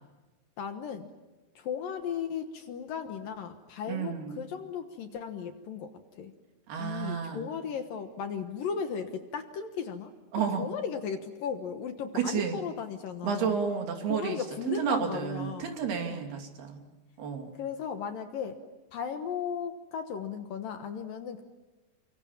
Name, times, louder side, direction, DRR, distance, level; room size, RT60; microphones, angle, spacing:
voice 1, 0.6-1.1 1.6-6.3 6.8-10.1 10.4-13.6 14.1-15.8 16.0-16.2 17.5-18.6 18.9-21.4, left 7 dB, 65° left, 7 dB, 2.6 m, -36 dB
voice 2, 3.9-4.4 6.7-7.5 10.3-10.7 12.1-12.6 13.2-14.4 14.7-16.8 17.2-17.5, right 7 dB, 65° right, 3 dB, 4.6 m, -31 dB
29.5 x 25.0 x 7.3 m, 1.1 s
omnidirectional pair, 4.9 m